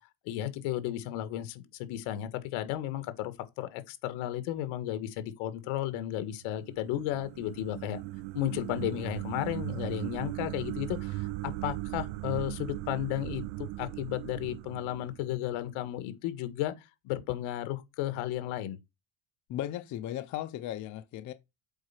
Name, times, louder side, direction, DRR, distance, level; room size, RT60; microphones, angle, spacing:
voice 1, 0.3-8.0 8.3-16.7 17.0-18.8, left 13 dB, 85° left, 1.6 m, -34 dB
sound 1, 6.4-15.7, right 19 dB, 75° right, 0.5 m, -38 dB
voice 2, 19.5-21.3, left 12 dB, 40° left, 0.6 m, -36 dB
8.0 x 4.3 x 5.7 m
cardioid pair, 180°, 47 cm